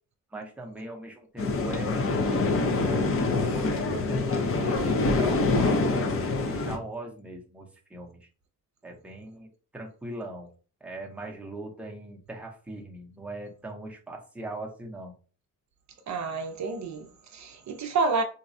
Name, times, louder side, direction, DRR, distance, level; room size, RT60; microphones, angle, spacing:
voice 1, 0.3-6.1 6.4-8.3 8.8-10.5 10.8-15.1, right 1 dB, 5° right, 0.6 m, -40 dB
sound 1, 1.4-6.8, left 3 dB, 40° left, 0.6 m, -25 dB
voice 2, 16.1-18.2, right 4 dB, 55° right, 0.5 m, -29 dB
4.0 x 2.2 x 2.6 m
wide cardioid pair, 130°, 33 cm